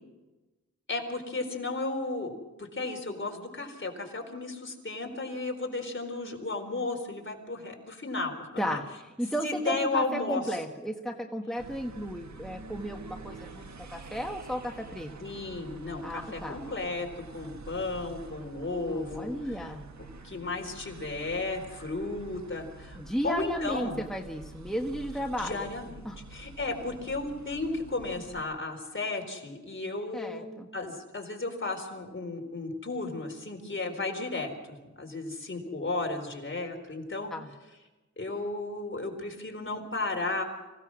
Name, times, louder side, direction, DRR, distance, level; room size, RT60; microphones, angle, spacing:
voice 1, 0.9-2.3 2.6-8.8 9.4-10.4 15.2-17.1 17.3-19.6 20.2-23.0 23.2-24.0 25.4-25.9 26.3-37.3 38.2-40.4, left 3 dB, 40° left, 3 dB, 4.1 m, -34 dB
voice 2, 8.6-15.1 16.0-16.6 18.9-19.9 23.0-25.6 26.0-26.4 30.1-30.7 37.3-37.5, equal, ahead, 2 dB, 1.4 m, -34 dB
sound 1, 11.6-28.4, right 3 dB, 70° right, 1.7 m, -47 dB
26.0 x 17.0 x 6.3 m, 1.1 s
wide cardioid pair, 90°, 29 cm